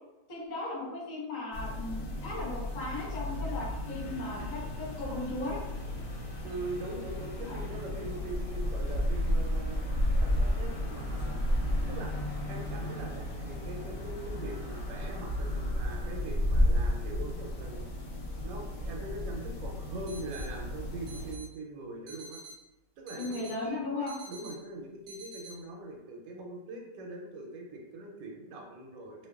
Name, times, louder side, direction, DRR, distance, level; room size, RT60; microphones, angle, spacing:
voice 1, 0.3-5.6 7.4-7.6 23.2-24.1, left 2 dB, 35° left, -7 dB, 0.8 m, -36 dB
sound 1, 1.5-21.3, left 1 dB, 65° left, 0.9 m, -33 dB
voice 2, 6.4-12.1 12.5-17.9 18.4-22.4 23.0-29.3, right 2 dB, 75° right, 0 dB, 1.2 m, -42 dB
sound 2, 20.1-20.5 21.1-21.5 22.1-22.5 23.1-23.5 24.1-24.5 25.1-25.5, right 3 dB, 55° right, 1.0 m, -47 dB
2.9 x 2.2 x 2.3 m, 0.95 s
omnidirectional pair, 2.0 m